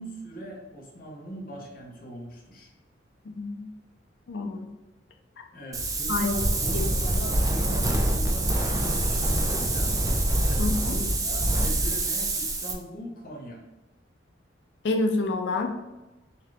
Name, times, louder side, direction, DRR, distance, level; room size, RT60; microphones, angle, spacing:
voice 1, 0.0-2.7 5.5-10.0 10.4-13.6, right 1 dB, 50° left, -2 dB, 1.0 m, -40 dB
voice 2, 3.3-3.7 4.3-4.7 6.1-6.4 6.7-6.9 10.6-10.9 14.8-15.7, left 3 dB, 70° left, 3 dB, 0.4 m, -28 dB
Wind, 5.7-12.7, right 1 dB, 20° right, 0.4 m, -25 dB
3.7 x 2.9 x 3.3 m, 1.0 s
head